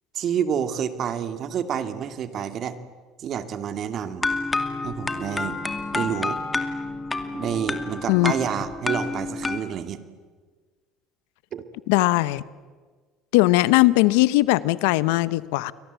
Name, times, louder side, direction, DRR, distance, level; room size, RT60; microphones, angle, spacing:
voice 1, 0.1-2.8 3.2-4.3 4.8-5.6 5.9-6.4 7.3-10.0 11.5-11.6, right 8 dB, 50° right, 10 dB, 2.3 m, -28 dB
sound 1, 4.2-9.6, left 3 dB, 20° left, 2.4 m, -29 dB
voice 2, 11.9-12.4 13.3-15.7, left 19 dB, 80° left, 18 dB, 0.8 m, -19 dB
30.0 x 23.0 x 8.2 m, 1.5 s
supercardioid pair, 85°, 0 cm